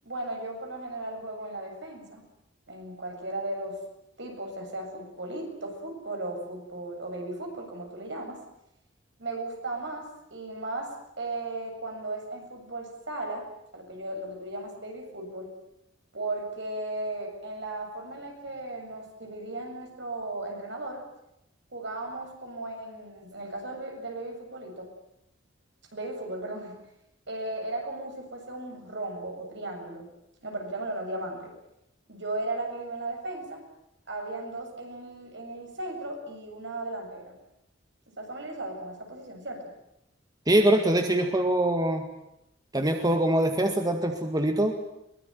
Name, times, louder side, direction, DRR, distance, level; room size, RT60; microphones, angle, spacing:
voice 1, 0.0-2.2 2.7-3.8 4.2-8.4 9.2-13.5 13.7-15.5 16.1-21.0 21.7-24.9 25.9-26.8 27.3-30.1 30.4-31.5 32.1-33.6 34.1-37.4 38.2-39.7, right 2 dB, 65° right, 3 dB, 7.5 m, -36 dB
voice 2, 40.5-42.1 42.7-44.8, right 1 dB, 20° right, 5 dB, 2.0 m, -23 dB
23.0 x 22.5 x 9.2 m, 0.85 s
head